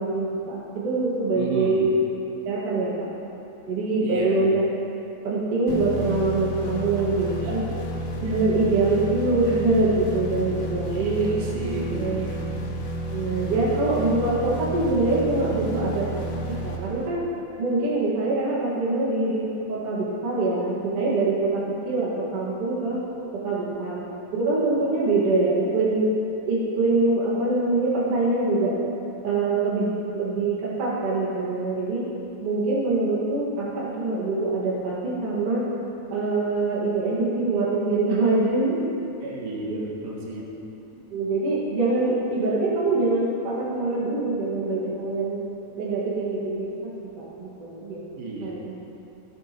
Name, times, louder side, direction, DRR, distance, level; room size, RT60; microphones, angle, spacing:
voice 1, 0.0-1.9 2.5-3.1 3.7-4.6 5.2-7.6 8.2-11.3 11.9-12.3 13.1-16.2 16.6-17.2 17.6-23.0 23.3-24.0 24.3-26.1 26.5-28.8 29.2-32.0 32.4-35.6 36.1-38.8 39.2-39.4 39.7-39.8 41.1-45.4 45.8-48.0 48.4-48.6, right 2 dB, 50° right, -7 dB, 2.4 m, -24 dB
voice 2, 1.3-1.8 4.0-4.4 7.4-7.8 10.9-12.4 39.2-40.5 48.2-48.5, right 3 dB, 75° right, -3 dB, 2.9 m, -33 dB
sound 1, 5.7-17.4, right 1 dB, 60° left, 1.6 m, -31 dB
17.5 x 7.3 x 3.0 m, 2.9 s
omnidirectional pair, 3.9 m